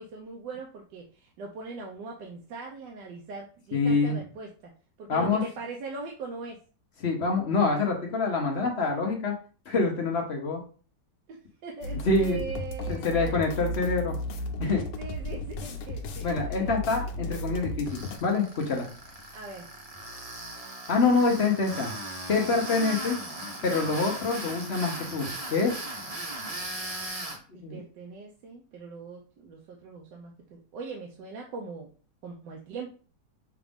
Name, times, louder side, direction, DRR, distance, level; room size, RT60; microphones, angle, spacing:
voice 1, 0.0-4.7 5.0-6.6 11.3-11.4 11.6-13.4 14.6-16.7 19.3-19.7 27.5-31.9 32.2-32.9, right 4 dB, 90° right, 0 dB, 1.4 m, -41 dB
voice 2, 3.7-4.2 5.1-5.4 7.0-9.3 9.7-10.6 12.0-12.4 12.9-14.1 14.6-14.8 16.2-18.9 20.9-21.9 22.3-23.2 23.6-25.7 27.6-27.8, left 4 dB, 50° left, 1 dB, 0.9 m, -26 dB
sound 1, 11.8-18.2, left 1 dB, 90° left, 1.4 m, -34 dB
Tools, 17.9-27.4, right 1 dB, 30° right, 0.7 m, -38 dB
5.9 x 2.5 x 3.5 m, 0.38 s
omnidirectional pair, 1.8 m